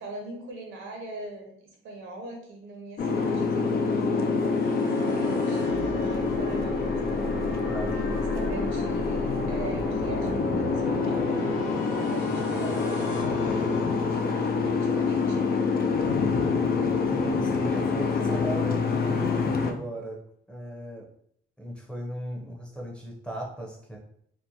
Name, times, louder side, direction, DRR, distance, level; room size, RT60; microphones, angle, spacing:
voice 1, 0.0-7.2 7.5-7.6 7.9-11.4 12.0-15.6, right 2 dB, 80° right, 1 dB, 0.8 m, -42 dB
Boat Water vehicle, 3.0-19.7, left 4 dB, 50° left, 0.4 m, -26 dB
sound 1, 4.3-14.5, left 1 dB, 85° left, 1.1 m, -35 dB
voice 2, 17.1-20.2 20.5-21.1 21.6-24.0, right 1 dB, 5° left, -2 dB, 0.7 m, -36 dB
2.9 x 2.1 x 2.6 m, 0.66 s
cardioid pair, 90°, 20 cm